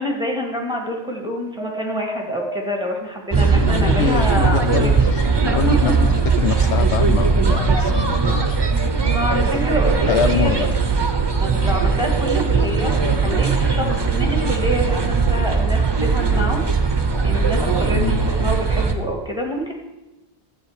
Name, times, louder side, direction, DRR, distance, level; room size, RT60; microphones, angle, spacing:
voice 1, 0.0-4.6 5.4-5.9 9.0-10.6 11.4-16.6 17.2-19.7, equal, 5° right, 0 dB, 1.7 m, -26 dB
sound 1, 1.6-6.7 8.5-8.8 10.6-14.6, left 1 dB, 20° left, 2.4 m, -39 dB
sound 2, 3.3-18.9, right 4 dB, 25° right, 0.8 m, -19 dB
voice 2, 3.5-5.3 5.5-6.0 6.4-8.6 10.0-10.8 17.9-18.3, left 8 dB, 80° left, 12 dB, 0.9 m, -24 dB
12.0 x 8.4 x 4.9 m, 1.0 s
omnidirectional pair, 1.2 m